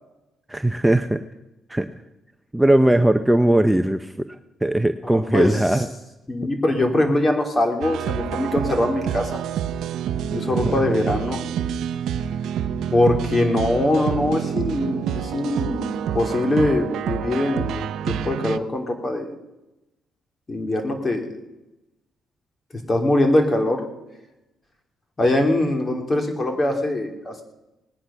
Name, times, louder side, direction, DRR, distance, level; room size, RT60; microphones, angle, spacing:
voice 1, 0.5-1.2 1.7-1.9 2.5-4.3 4.6-5.9 10.6-10.7, right 1 dB, 5° right, 8 dB, 0.7 m, -19 dB
voice 2, 5.0-5.6 6.3-9.4 10.3-11.4 12.9-19.3 20.5-21.3 22.9-23.8 25.2-27.4, left 1 dB, 30° left, 3 dB, 3.1 m, -22 dB
sound 1, 7.8-18.6, right 9 dB, 80° right, 0.7 m, -27 dB
19.0 x 10.0 x 5.7 m, 0.96 s
cardioid pair, 90°, 0 cm